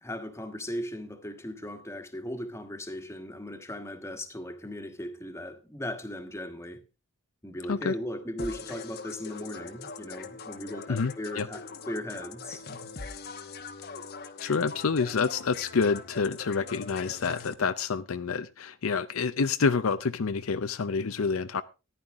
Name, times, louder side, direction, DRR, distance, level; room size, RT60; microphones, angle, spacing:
voice 1, 0.0-6.8 7.4-12.6, left 1 dB, 15° left, 1.5 m, -38 dB
sound 1, 8.4-17.5, left 4 dB, 45° left, 1.0 m, -42 dB
voice 2, 10.9-11.5 14.4-21.6, left 5 dB, 70° left, 0.6 m, -28 dB
14.5 x 10.5 x 3.6 m
head